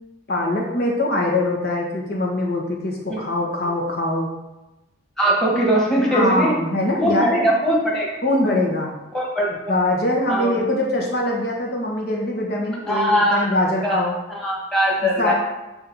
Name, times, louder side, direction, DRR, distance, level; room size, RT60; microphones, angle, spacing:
voice 1, 0.3-4.3 6.1-7.5 8.2-8.9 9.7-14.1 15.2-15.3, left 1 dB, 55° left, -1 dB, 1.6 m, -22 dB
voice 2, 5.2-6.6 7.0-8.1 8.4-8.6 9.1-9.7 10.3-10.6 12.9-13.5 13.8-14.0 14.3-15.3, right 1 dB, 5° left, -4 dB, 1.6 m, -20 dB
8.7 x 3.0 x 5.6 m, 1.0 s
head